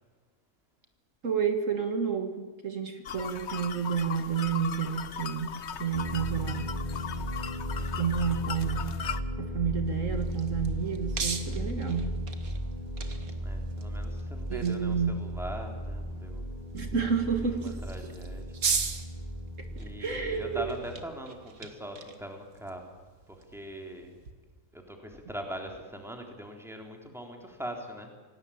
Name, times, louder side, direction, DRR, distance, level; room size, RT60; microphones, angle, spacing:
voice 1, 1.2-6.7 8.0-9.0 9.4-12.1 14.5-15.2 16.7-17.8 20.0-20.7, right 6 dB, 65° right, 6 dB, 2.1 m, -30 dB
sound 1, 3.1-9.2, left 8 dB, 55° left, 1.1 m, -38 dB
sound 2, 5.9-20.7, equal, 25° right, 3.5 m, -35 dB
voice 2, 7.0-7.4 13.4-16.5 17.8-18.4 19.8-22.8 23.5-24.1 24.7-28.1, equal, ahead, 2 dB, 3.8 m, -41 dB
sound 3, 9.8-24.3, right 5 dB, 90° right, 2.3 m, -40 dB
27.5 x 18.0 x 8.9 m, 1.4 s
omnidirectional pair, 1.4 m